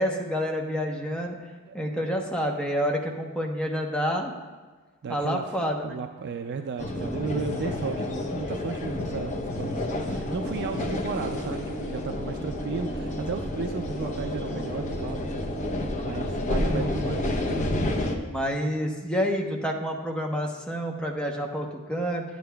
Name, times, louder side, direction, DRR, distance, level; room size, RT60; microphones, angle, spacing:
voice 1, 0.0-1.3 1.7-4.3 5.1-6.0 16.7-16.9 18.3-22.2, equal, 5° left, 0 dB, 0.8 m, -28 dB
voice 2, 5.0-5.5 5.8-15.2 16.0-17.4, right 5 dB, 55° right, 6 dB, 0.4 m, -34 dB
sound 1, 6.8-18.2, left 1 dB, 35° left, 0.8 m, -30 dB
10.5 x 9.5 x 2.3 m, 1.3 s
head